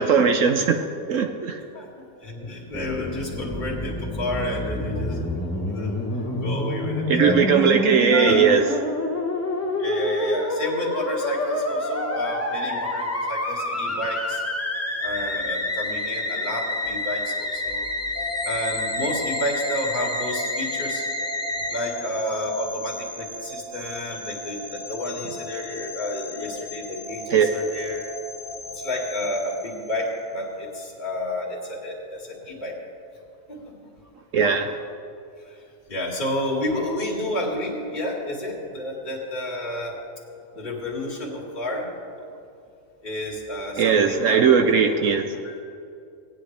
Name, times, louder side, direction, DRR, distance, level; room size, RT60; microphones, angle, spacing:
voice 1, 0.0-1.6 7.1-8.6 27.3-27.5 34.3-34.8 43.8-45.4, right 6 dB, 65° right, 6 dB, 1.0 m, -19 dB
voice 2, 2.2-7.7 8.1-8.4 9.8-14.4 15.0-17.9 18.4-21.0 21.7-28.0 28.7-32.8 33.5-33.7 35.5-35.6 35.9-40.0 40.6-41.9 43.0-44.4 45.4-45.6, left 1 dB, 30° left, -4 dB, 2.2 m, -30 dB
Musical instrument, 2.7-21.8, left 1 dB, 15° left, 0.6 m, -28 dB
sound 1, 18.1-30.3, left 2 dB, 50° left, 1.6 m, -36 dB
18.5 x 9.7 x 3.3 m, 2.5 s
omnidirectional pair, 1.6 m